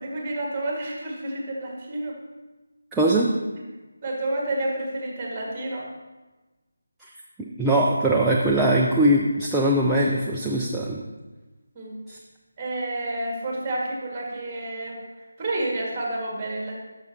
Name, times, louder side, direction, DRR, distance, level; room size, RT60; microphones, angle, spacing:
voice 1, 0.0-2.2 4.0-5.9 11.7-12.0 12.6-15.0 15.4-16.8, right 1 dB, 20° right, -1 dB, 1.8 m, -29 dB
voice 2, 2.9-3.3 7.4-11.0 12.1-12.2, right 1 dB, 5° right, -5 dB, 0.5 m, -21 dB
11.5 x 6.6 x 2.8 m, 1.2 s
figure-of-eight pair, 160°, 0 cm